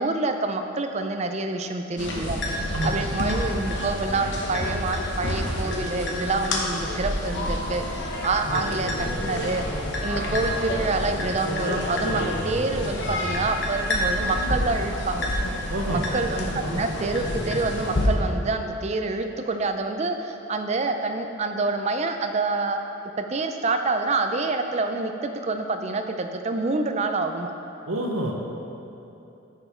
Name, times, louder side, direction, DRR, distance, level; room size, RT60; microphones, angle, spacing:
voice 1, 0.0-2.4 2.8-8.9 9.2-9.7 10.0-15.3 15.9-22.8 23.2-27.5, right 3 dB, 30° right, 6 dB, 0.4 m, -27 dB
sound 1, 2.0-18.1, left 1 dB, 55° left, 1.0 m, -28 dB
voice 2, 2.7-3.1 15.7-16.1 27.9-28.3, right 1 dB, 75° right, 1 dB, 1.1 m, -27 dB
9.5 x 6.9 x 4.4 m, 2.9 s
head